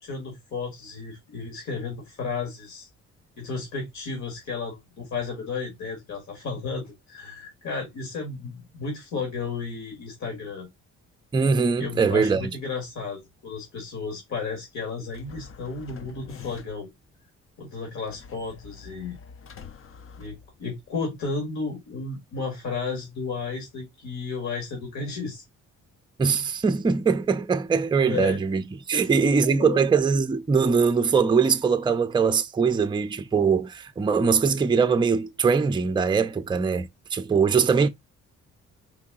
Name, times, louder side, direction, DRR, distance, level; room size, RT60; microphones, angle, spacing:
voice 1, 0.0-2.9 3.4-10.7 11.8-16.9 17.6-19.2 20.2-25.4 28.0-28.4 28.9-29.8, left 4 dB, 65° left, 1.9 m, -33 dB
voice 2, 11.3-12.5 26.2-28.6 28.9-37.9, right 5 dB, 15° right, 0.5 m, -22 dB
sound 1, 15.1-17.0 18.1-20.9, left 6 dB, 45° left, 0.7 m, -46 dB
4.6 x 2.8 x 3.7 m
cardioid pair, 90°, 30 cm